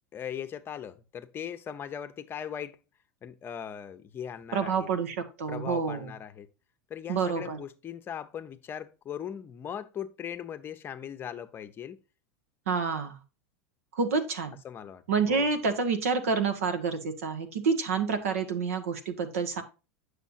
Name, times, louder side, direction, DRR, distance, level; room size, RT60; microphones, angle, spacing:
voice 1, 0.1-2.8 3.2-4.9 5.5-6.5 6.9-12.0 14.6-15.5, left 9 dB, 30° left, 0.7 m, -39 dB
voice 2, 4.5-6.1 7.1-7.6 12.7-13.2 13.9-14.6 15.1-19.6, right 5 dB, 85° right, 1.3 m, -28 dB
8.2 x 6.4 x 2.6 m
supercardioid pair, 110°, 7 cm